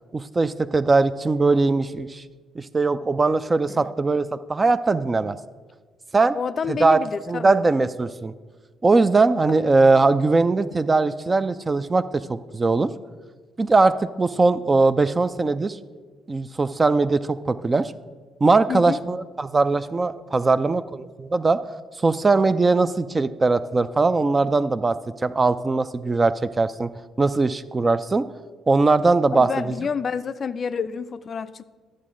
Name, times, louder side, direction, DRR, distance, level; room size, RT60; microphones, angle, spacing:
voice 1, 0.1-2.2 2.6-5.4 6.1-6.4 6.7-7.0 7.3-8.3 8.8-12.9 13.6-15.8 16.3-17.9 18.4-21.6 22.0-25.0 25.2-26.9 27.2-28.3 28.7-29.5, right 3 dB, 30° right, 13 dB, 0.4 m, -20 dB
voice 2, 6.3-7.6 18.7-19.0 29.3-31.6, left 6 dB, 50° left, 13 dB, 0.3 m, -29 dB
11.0 x 7.5 x 3.7 m, 1.4 s
hypercardioid pair, 50°, 0 cm